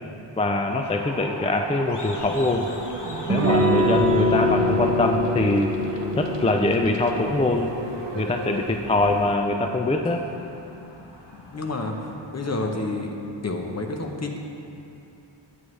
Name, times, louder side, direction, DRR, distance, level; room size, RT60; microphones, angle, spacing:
voice 1, 0.4-2.7 3.3-5.7 6.2-7.7 8.2-10.2, left 2 dB, 15° left, 4 dB, 0.3 m, -23 dB
sound 1, 0.8-12.1, left 1 dB, 60° left, 1.3 m, -41 dB
sound 2, 2.2-9.4, right 4 dB, 65° right, 0.7 m, -34 dB
Electric guitar / Strum, 3.3-8.7, left 1 dB, 30° right, 0.8 m, -25 dB
voice 2, 11.5-13.1 13.4-14.4, left 2 dB, 35° left, 2 dB, 0.9 m, -29 dB
9.1 x 8.3 x 3.2 m, 2.8 s
wide cardioid pair, 85°, 47 cm